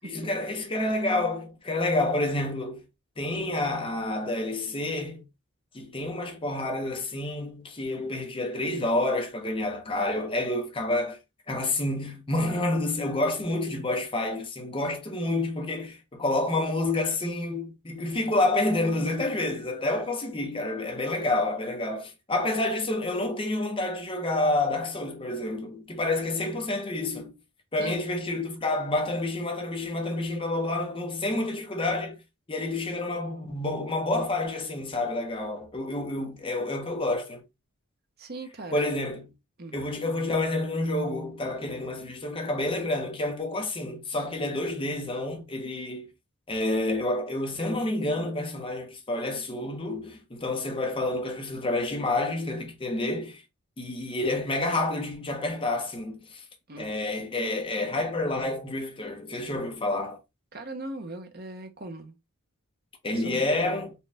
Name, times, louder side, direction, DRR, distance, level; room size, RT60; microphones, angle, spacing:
voice 1, 0.0-2.8 3.2-5.3 5.7-11.2 11.5-27.3 27.7-32.2 32.5-37.4 38.7-39.3 39.7-46.1 46.5-53.4 53.8-56.4 56.8-60.2 63.0-63.9, left 2 dB, 25° left, 0.8 m, -29 dB
voice 2, 38.2-38.8 39.6-39.8 56.7-56.9 60.5-62.2 63.1-63.4, right 2 dB, 45° right, 0.8 m, -39 dB
4.4 x 2.4 x 3.3 m
head